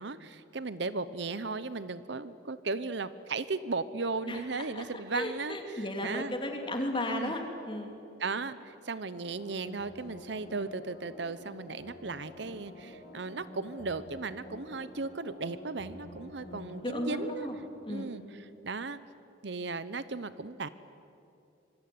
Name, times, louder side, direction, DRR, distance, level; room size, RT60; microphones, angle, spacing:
voice 1, 0.0-6.3 7.1-7.3 8.2-17.5 17.9-19.0 19.4-20.7, right 3 dB, 65° right, 15 dB, 0.8 m, -36 dB
voice 2, 5.1-7.9 16.4-17.5 17.8-18.1, left 1 dB, 25° left, 4 dB, 3.0 m, -35 dB
sound 1, 9.0-18.4 18.8-18.9, left 1 dB, 45° left, 5.6 m, -50 dB
26.0 x 23.5 x 9.5 m, 2.7 s
head